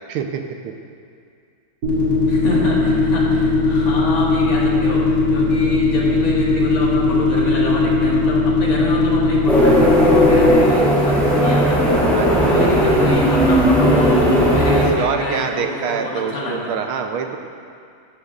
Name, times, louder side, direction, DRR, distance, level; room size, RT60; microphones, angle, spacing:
voice 1, 0.1-0.7 11.4-11.8 12.1-12.6 14.8-17.4, right 6 dB, 85° right, 5 dB, 1.6 m, -26 dB
sound 1, 1.8-10.6, left 3 dB, 60° right, 3.4 m, -19 dB
voice 2, 2.3-11.8 12.3-16.8, left 1 dB, 70° left, -4 dB, 2.6 m, -27 dB
sound 2, 9.5-14.9, equal, ahead, 2.0 m, -15 dB
13.5 x 13.0 x 2.5 m, 2.3 s
omnidirectional pair, 2.2 m